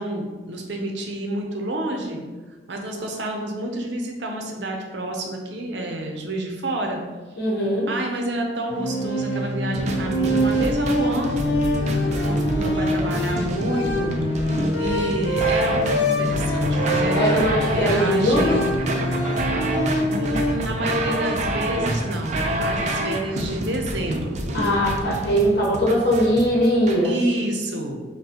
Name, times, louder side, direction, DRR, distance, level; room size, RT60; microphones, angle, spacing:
voice 1, 0.0-2.2 2.7-7.0 7.9-11.4 12.0-14.2 14.8-17.5 17.7-18.7 20.1-24.5 27.0-28.0, right 1 dB, 85° right, 2 dB, 0.7 m, -29 dB
voice 2, 7.4-7.9 17.1-18.6 24.5-27.1, equal, 65° left, -4 dB, 0.9 m, -20 dB
sound 1, 8.7-20.5, equal, 90° left, 0.5 m, -24 dB
sound 2, 9.7-27.0, right 1 dB, 40° right, 0.4 m, -27 dB
5.4 x 2.3 x 2.9 m, 1.3 s
head